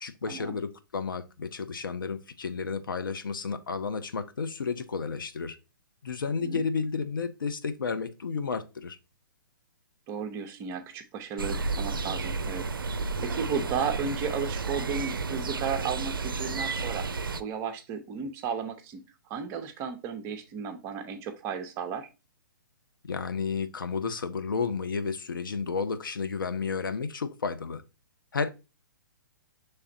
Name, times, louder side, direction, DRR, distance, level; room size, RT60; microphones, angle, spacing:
voice 1, 0.0-5.6 6.0-9.0 23.1-27.8 28.3-28.5, left 5 dB, 70° left, 0.5 m, -32 dB
voice 2, 10.1-17.1 17.4-19.0 19.3-22.1, right 6 dB, 25° right, 0.5 m, -34 dB
sound 1, 11.4-17.4, right 4 dB, 80° right, 0.4 m, -32 dB
5.7 x 3.3 x 2.5 m
figure-of-eight pair, 125°, 11 cm